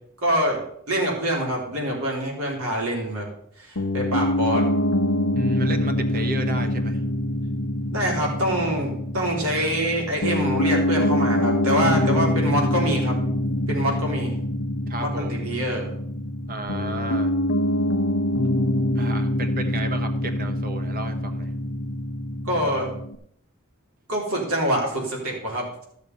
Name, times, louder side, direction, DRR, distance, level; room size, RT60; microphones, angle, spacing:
voice 1, 0.2-0.6 0.9-3.3 3.6-4.7 7.9-13.1 13.7-14.4 15.0-15.9 22.4-22.9 24.1-25.8, equal, 80° right, -1 dB, 3.9 m, -25 dB
Piano, 3.8-23.2, left 1 dB, 70° left, 0.9 m, -25 dB
voice 2, 5.4-7.0 14.9-15.4 16.5-17.3 18.9-21.5, right 2 dB, 45° right, 7 dB, 1.4 m, -33 dB
13.5 x 6.6 x 5.4 m, 0.71 s
head